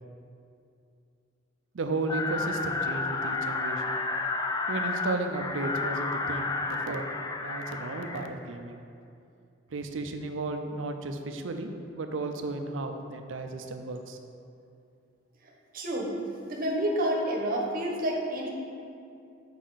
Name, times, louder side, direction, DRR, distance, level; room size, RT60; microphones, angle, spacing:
voice 1, 1.7-4.0 4.7-7.1 7.4-8.8 9.7-14.2, right 2 dB, 80° right, 6 dB, 0.5 m, -34 dB
sound 1, 2.1-8.3, left 3 dB, 20° left, 0.3 m, -31 dB
voice 2, 15.4-16.1 16.5-18.5, right 1 dB, 50° right, -1 dB, 1.0 m, -29 dB
6.5 x 5.2 x 4.0 m, 2.6 s
head